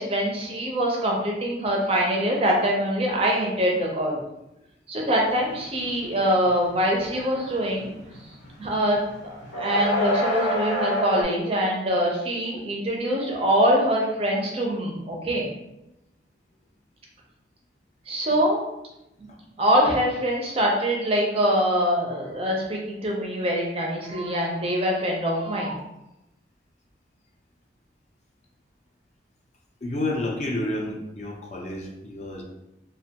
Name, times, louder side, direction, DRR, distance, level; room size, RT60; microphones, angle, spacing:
voice 1, 0.0-4.2 4.9-7.9 8.6-9.0 9.6-15.5 18.1-18.6 19.6-25.8, equal, 30° right, -1 dB, 0.4 m, -24 dB
sound 1, 5.5-5.9 6.1-8.6 8.9-11.2, left 1 dB, 90° left, 0.7 m, -26 dB
voice 2, 29.8-32.4, left 1 dB, 40° left, 0 dB, 0.4 m, -30 dB
2.4 x 2.2 x 2.7 m, 0.90 s
head